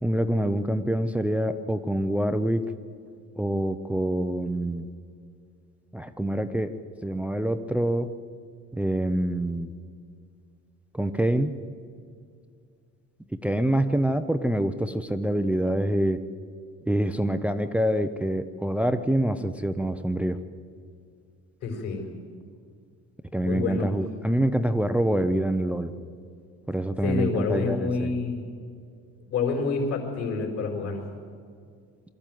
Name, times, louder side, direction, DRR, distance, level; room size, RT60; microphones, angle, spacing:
voice 1, 0.0-2.6 3.4-4.9 5.9-6.7 7.0-8.1 8.7-9.7 10.9-11.6 13.4-16.2 16.9-20.4 23.3-25.9 26.7-28.1, right 1 dB, 5° right, 9 dB, 0.5 m, -26 dB
voice 2, 21.6-22.1 23.4-23.9 27.0-28.4 29.3-31.0, left 4 dB, 55° left, 2 dB, 4.5 m, -27 dB
22.5 x 14.0 x 9.2 m, 2.2 s
cardioid pair, 165°, 30 cm